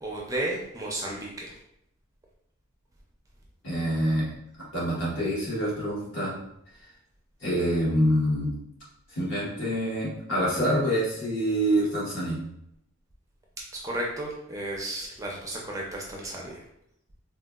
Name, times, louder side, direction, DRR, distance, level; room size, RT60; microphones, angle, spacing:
voice 1, 0.0-1.5 13.8-16.6, right 1 dB, 15° right, -2 dB, 0.4 m, -33 dB
voice 2, 3.6-4.3 4.7-6.4 7.4-8.5 9.1-12.4, equal, 65° left, -6 dB, 1.2 m, -26 dB
3.6 x 2.3 x 2.3 m, 0.77 s
head